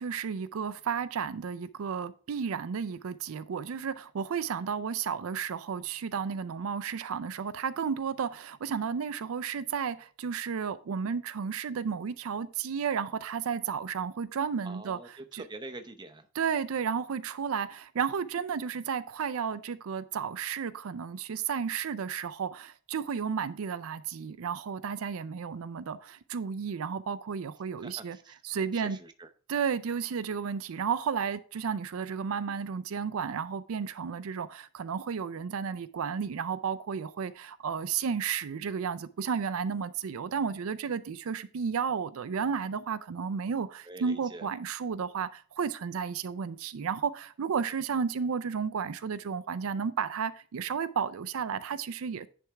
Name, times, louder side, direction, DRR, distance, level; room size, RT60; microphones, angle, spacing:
voice 1, 0.0-15.0 15.3-15.4 16.3-28.2 28.4-29.0 29.5-52.3, right 6 dB, 75° right, 0.4 m, -33 dB
voice 2, 14.6-16.3 27.8-29.3 43.8-44.5, right 2 dB, 20° right, 0.6 m, -45 dB
10.0 x 3.4 x 4.6 m
head